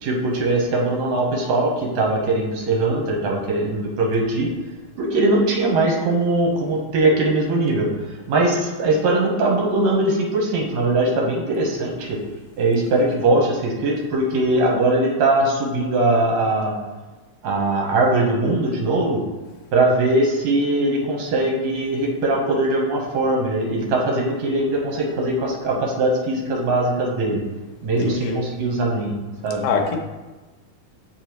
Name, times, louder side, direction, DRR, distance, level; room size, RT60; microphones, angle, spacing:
voice 1, 0.0-4.5 5.0-7.9 8.3-12.2 12.6-16.7 17.4-19.2 19.7-27.4 27.8-29.1 29.4-29.7, right 2 dB, 70° right, -1 dB, 2.3 m, -21 dB
voice 2, 28.0-28.5 29.6-30.0, left 5 dB, 85° left, 3 dB, 2.4 m, -23 dB
6.7 x 5.3 x 3.1 m, 1.2 s
omnidirectional pair, 3.6 m